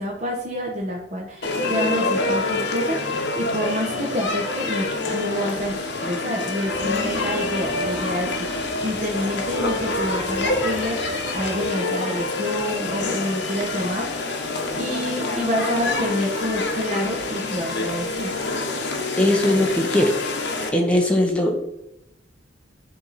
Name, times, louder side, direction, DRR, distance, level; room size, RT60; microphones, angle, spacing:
voice 1, 0.0-14.3 14.7-18.4, equal, 40° right, -1 dB, 1.0 m, -28 dB
sound 1, 1.4-20.7, left 2 dB, 65° left, 1.1 m, -26 dB
sound 2, 6.6-11.6, equal, 35° left, 3.0 m, -34 dB
voice 2, 19.2-20.2 20.7-21.6, left 1 dB, 5° left, 1 dB, 1.0 m, -19 dB
10.0 x 3.7 x 4.1 m, 0.87 s
head